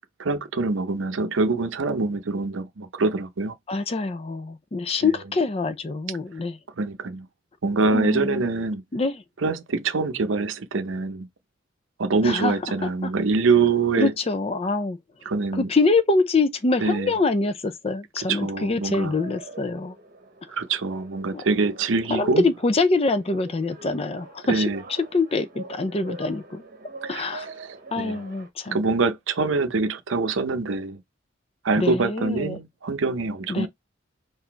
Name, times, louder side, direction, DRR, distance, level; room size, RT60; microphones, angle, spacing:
voice 1, 0.2-3.5 5.0-5.1 6.8-7.3 7.6-8.8 9.4-11.3 12.0-14.1 15.3-15.7 16.8-17.1 18.3-19.2 20.5-22.4 24.5-24.8 27.0-27.3 27.6-28.2 28.7-31.0 31.6-33.7, right 3 dB, 80° right, 0.7 m, -24 dB
voice 2, 3.7-6.6 7.9-8.4 8.9-9.2 12.2-12.5 12.8-13.1 14.0-15.0 15.5-20.0 21.3-21.4 22.1-24.6 25.1-26.6 27.1-27.5 27.9-28.8 31.8-32.6 33.5-33.7, left 3 dB, 30° left, 0.5 m, -24 dB
sound 1, 19.2-28.5, right 2 dB, 45° right, 0.9 m, -44 dB
3.9 x 2.6 x 4.5 m
head